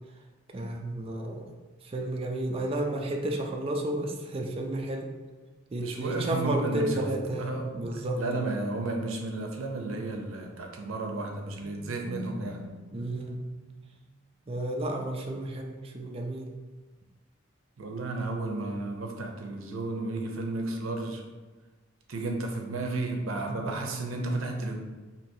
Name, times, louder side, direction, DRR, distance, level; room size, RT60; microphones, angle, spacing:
voice 1, 0.5-1.5 1.8-5.1 5.7-8.5 12.9-13.4 14.5-16.5 23.5-23.7, right 1 dB, 30° right, 2 dB, 0.4 m, -32 dB
voice 2, 5.8-12.6 17.8-21.2 22.1-24.7, right 2 dB, 85° right, 2 dB, 0.6 m, -33 dB
sound 1, 6.9-10.0 11.2-14.1, equal, 30° left, 0.8 m, -43 dB
4.5 x 2.8 x 2.7 m, 1.3 s
head